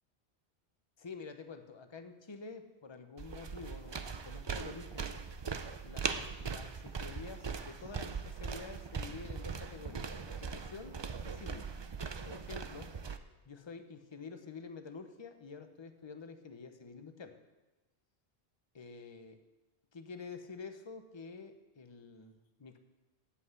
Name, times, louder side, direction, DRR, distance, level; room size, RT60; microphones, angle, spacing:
voice 1, 1.0-5.2 5.8-11.7 12.2-12.9 13.4-17.3 18.7-19.4 19.9-22.8, left 4 dB, 30° left, 8 dB, 0.8 m, -48 dB
sound 1, 3.2-13.2, right 5 dB, 40° right, 0.3 m, -40 dB
8.4 x 7.8 x 8.1 m, 1.1 s
omnidirectional pair, 1.1 m